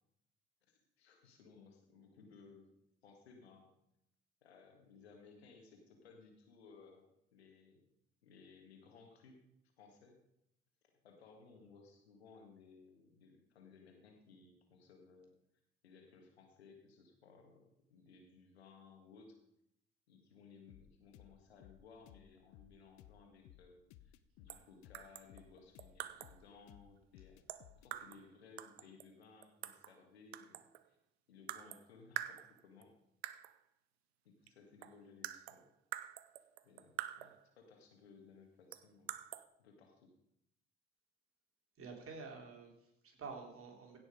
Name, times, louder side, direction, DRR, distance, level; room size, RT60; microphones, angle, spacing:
voice 1, 0.7-2.7 3.0-3.7 4.4-7.9 8.2-9.4 9.8-10.2 11.0-15.3 15.8-19.4 20.1-31.0 31.3-32.9 34.2-35.7 36.6-39.2 39.6-40.1, left 4 dB, 85° left, 3 dB, 1.9 m, -61 dB
sound 1, 20.7-27.9, left 12 dB, 60° left, 0.7 m, -61 dB
sound 2, 24.5-24.7 24.9-26.4 27.5-28.3 28.6-30.0 30.3-30.9 31.5-31.9 32.2-32.8 33.2-33.6 34.5-34.6 34.8-37.5 38.7-39.4, right 13 dB, 80° right, 0.6 m, -46 dB
voice 2, 41.8-44.0, right 4 dB, 45° right, 2 dB, 3.4 m, -49 dB
16.0 x 6.1 x 5.3 m, 0.78 s
hypercardioid pair, 55°, 31 cm